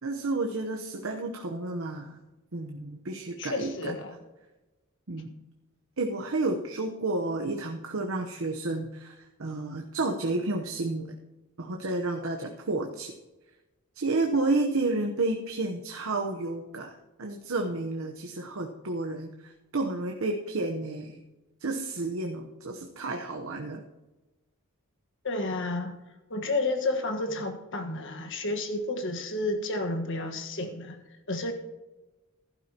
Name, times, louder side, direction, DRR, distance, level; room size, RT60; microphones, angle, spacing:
voice 1, 0.0-2.2 2.5-3.9 5.1-5.3 6.0-11.1 11.6-13.1 13.9-16.9 17.2-21.2 21.6-23.8, right 2 dB, 70° right, 2 dB, 0.9 m, -31 dB
voice 2, 3.4-4.1 25.2-25.9 26.3-31.0 31.3-31.5, left 2 dB, 60° left, 6 dB, 1.4 m, -31 dB
15.5 x 11.5 x 2.9 m, 1.1 s
head